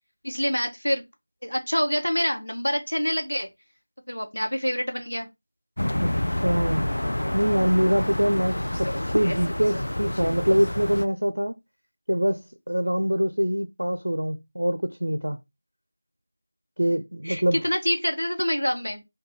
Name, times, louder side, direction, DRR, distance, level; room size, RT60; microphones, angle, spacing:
voice 1, 0.2-1.0 1.4-3.5 4.1-5.3 17.2-19.0, equal, 80° left, 0.9 m, -26 dB
sound 1, 5.8-11.1, left 1 dB, 60° left, 0.3 m, -28 dB
voice 2, 5.9-6.9 7.3-11.6 12.1-15.4 16.8-17.6, equal, 70° right, 0.4 m, -24 dB
3.9 x 2.2 x 3.0 m
figure-of-eight pair, 170°, 0 cm